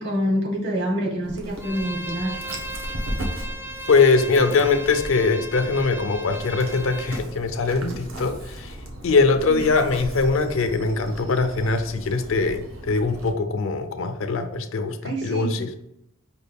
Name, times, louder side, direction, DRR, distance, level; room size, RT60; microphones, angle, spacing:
voice 1, 0.0-2.4 9.5-9.6 15.0-15.5, equal, 55° right, 1 dB, 1.1 m, -26 dB
Dog, 1.2-13.3, right 1 dB, 75° right, 0.8 m, -37 dB
Bowed string instrument, 1.6-7.2, right 1 dB, 10° right, 0.3 m, -36 dB
voice 2, 3.9-8.8 9.0-15.7, left 4 dB, 70° left, 8 dB, 0.5 m, -22 dB
5.0 x 2.2 x 3.4 m, 0.81 s
head